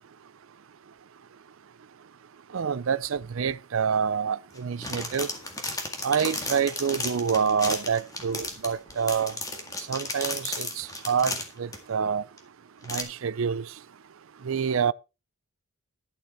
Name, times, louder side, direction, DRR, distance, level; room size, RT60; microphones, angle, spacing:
voice 1, 2.5-5.3 6.0-9.3 9.9-12.2 12.9-13.6 14.4-14.9, right 6 dB, 65° right, 0.5 m, -27 dB
sound 1, 4.5-11.8 12.4-12.5 12.8-13.0, left 2 dB, 15° left, 1.9 m, -34 dB
12.0 x 7.9 x 4.4 m
head